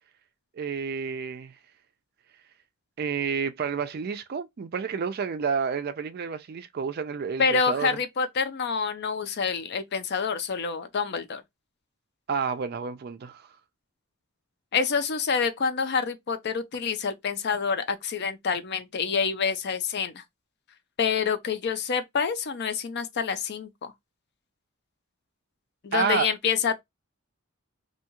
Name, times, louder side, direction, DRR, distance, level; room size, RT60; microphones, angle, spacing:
voice 1, 0.6-1.5 3.0-8.0 12.3-13.4 25.9-26.3, right 6 dB, 45° right, 0.3 m, -30 dB
voice 2, 7.4-11.4 14.7-20.2 21.0-23.9 25.8-26.8, left 5 dB, 50° left, 0.5 m, -27 dB
2.7 x 2.3 x 2.8 m
head